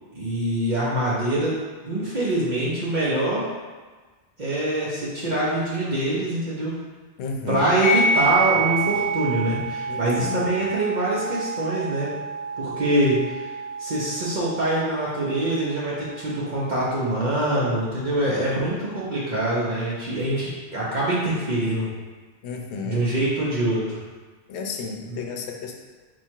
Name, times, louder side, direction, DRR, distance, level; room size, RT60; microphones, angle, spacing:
voice 1, 0.1-1.5 1.8-3.5 4.4-6.7 7.5-12.1 12.6-13.4 13.8-21.9 22.8-24.0 25.1-25.2, right 1 dB, 50° right, -7 dB, 0.8 m, -24 dB
voice 2, 7.2-7.6 9.9-10.5 22.4-23.1 24.5-25.8, left 5 dB, 85° left, 2 dB, 0.9 m, -32 dB
sound 1, 7.8-16.8, right 3 dB, 35° left, 1.2 m, -28 dB
4.5 x 2.4 x 4.3 m, 1.3 s
omnidirectional pair, 1.1 m